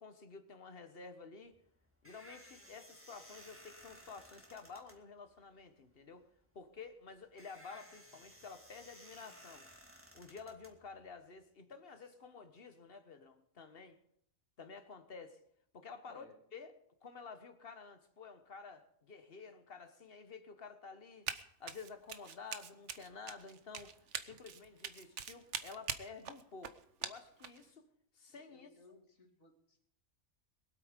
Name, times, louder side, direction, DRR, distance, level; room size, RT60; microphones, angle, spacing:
voice 1, 0.0-1.6 2.0-6.3 6.5-9.7 10.1-14.0 14.6-15.4 15.7-16.2 16.5-16.7 17.0-21.3 21.6-23.9 24.2-26.7 27.0-27.9 28.1-28.7, left 5 dB, 45° left, 8 dB, 1.5 m, -51 dB
sound 1, 1.5-11.4, equal, 10° right, 1.9 m, -58 dB
voice 2, 16.0-16.4 28.3-29.8, left 2 dB, 75° left, 3 dB, 2.8 m, -61 dB
Run, 21.3-21.4 21.7-27.6, right 7 dB, 65° right, 1.2 m, -43 dB
22.5 x 8.4 x 5.2 m, 0.71 s
omnidirectional pair, 1.4 m